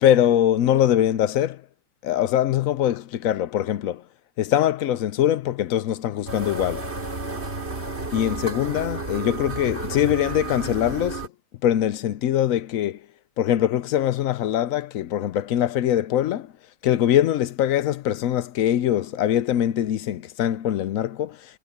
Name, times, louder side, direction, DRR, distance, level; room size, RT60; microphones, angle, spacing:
voice 1, 0.0-1.6 2.0-4.0 4.4-6.9 8.1-11.2 11.6-13.0 13.4-16.5 16.8-21.4, left 11 dB, 70° left, 0.9 m, -22 dB
sound 1, 6.3-11.3, right 3 dB, 45° right, 3.8 m, -31 dB
omnidirectional pair, 1.6 m